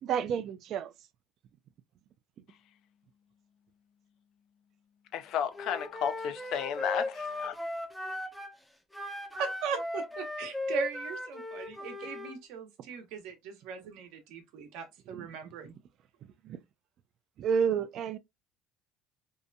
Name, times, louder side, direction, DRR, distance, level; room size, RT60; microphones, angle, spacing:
voice 1, 0.0-0.9 15.1-15.3 16.4-16.6 17.4-18.2, right 7 dB, 55° right, 0.3 m, -30 dB
voice 2, 5.1-7.6, left 8 dB, 65° left, 0.4 m, -33 dB
Wind instrument woodwind instrument, 5.6-8.6 8.9-12.4, left 2 dB, 5° left, 0.5 m, -37 dB
voice 3, 9.3-15.7, right 6 dB, 75° right, 0.8 m, -39 dB
2.7 x 2.2 x 2.5 m
supercardioid pair, 105°, 0 cm